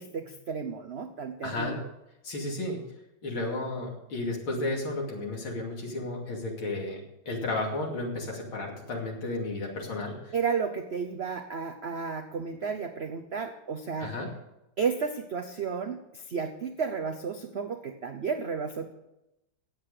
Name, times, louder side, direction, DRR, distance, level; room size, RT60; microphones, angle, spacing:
voice 1, 0.0-1.9 10.3-14.1 14.8-18.9, right 5 dB, 55° right, 5 dB, 0.7 m, -32 dB
voice 2, 1.4-1.8 2.2-2.8 3.2-7.0 7.2-10.3 14.0-14.3, left 2 dB, 90° left, -1 dB, 3.4 m, -33 dB
17.5 x 8.0 x 5.0 m, 0.90 s
omnidirectional pair, 2.2 m